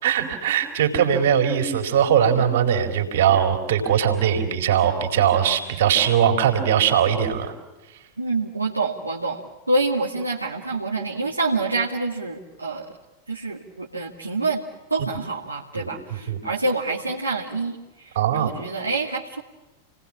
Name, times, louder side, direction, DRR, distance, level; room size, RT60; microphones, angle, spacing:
voice 1, 0.0-7.5 15.0-15.1 15.8-16.4 18.1-18.5, right 9 dB, 55° right, 5 dB, 4.2 m, -20 dB
voice 2, 8.2-12.9 13.3-14.6 14.9-19.4, right 3 dB, 80° right, -3 dB, 2.2 m, -27 dB
29.5 x 19.5 x 8.9 m, 1.1 s
figure-of-eight pair, 90°, 0 cm